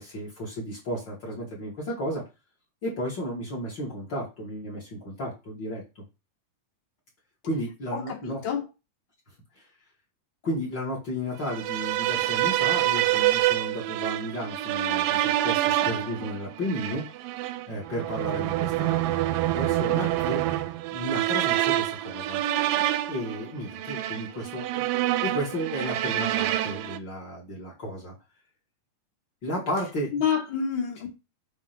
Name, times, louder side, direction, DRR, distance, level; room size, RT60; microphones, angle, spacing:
voice 1, 0.0-2.2 2.8-5.8 7.4-8.4 10.4-17.0 17.7-19.3 19.6-20.4 20.9-22.4 23.1-24.9 25.2-28.1 29.4-30.2, equal, 35° left, 2.4 m, -33 dB
voice 2, 7.9-8.6 30.1-31.1, left 7 dB, 70° left, 1.1 m, -28 dB
sound 1, 11.5-27.0, right 14 dB, 85° right, 2.2 m, -27 dB
7.4 x 3.4 x 5.9 m
omnidirectional pair, 3.9 m